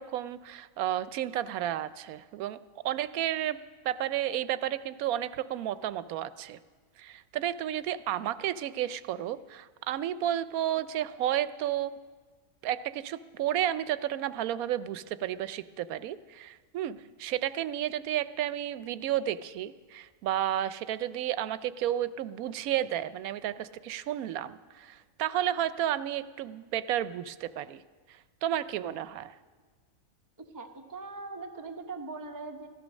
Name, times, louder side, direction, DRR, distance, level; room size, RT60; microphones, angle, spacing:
voice 1, 0.0-3.6 3.8-6.6 7.0-11.9 12.6-27.8 28.4-29.3, right 11 dB, 85° right, 15 dB, 1.1 m, -32 dB
voice 2, 30.4-32.7, right 3 dB, 15° right, 4 dB, 0.9 m, -41 dB
15.5 x 12.5 x 6.3 m, 1.5 s
omnidirectional pair, 1.5 m